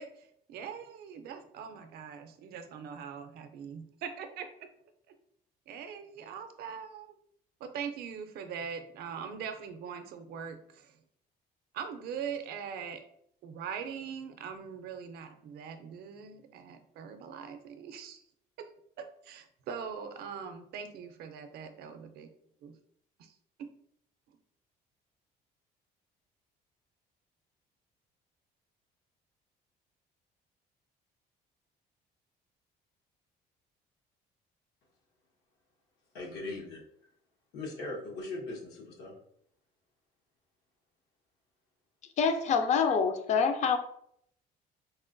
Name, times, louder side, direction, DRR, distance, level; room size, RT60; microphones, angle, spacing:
voice 1, 0.0-4.7 5.1-5.2 5.7-7.1 7.6-11.0 11.7-13.0 13.4-18.2 18.6-18.7 19.0-22.3 22.6-22.8 23.2-23.3 23.6-23.7, right 7 dB, 70° right, 8 dB, 0.5 m, -42 dB
voice 2, 36.1-36.8 37.5-39.1 42.8-43.0, left 2 dB, 90° left, -2 dB, 1.1 m, -40 dB
voice 3, 42.2-43.8, left 5 dB, 45° left, 7 dB, 0.4 m, -26 dB
4.1 x 2.2 x 2.5 m, 0.69 s
cardioid pair, 110°, 17 cm